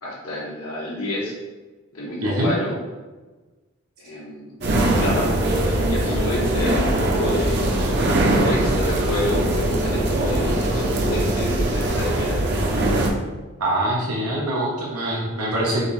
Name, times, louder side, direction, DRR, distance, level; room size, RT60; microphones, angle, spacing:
voice 1, 0.0-1.3 1.9-2.8 4.0-4.5 5.0-7.7 8.4-12.4, left 1 dB, 85° left, -3 dB, 1.4 m, -29 dB
voice 2, 2.2-2.5 13.6-15.9, right 1 dB, 85° right, -4 dB, 0.9 m, -24 dB
sound 1, 4.6-13.1, right 1 dB, 50° right, 0.6 m, -21 dB
6.2 x 2.7 x 3.2 m, 1.2 s
head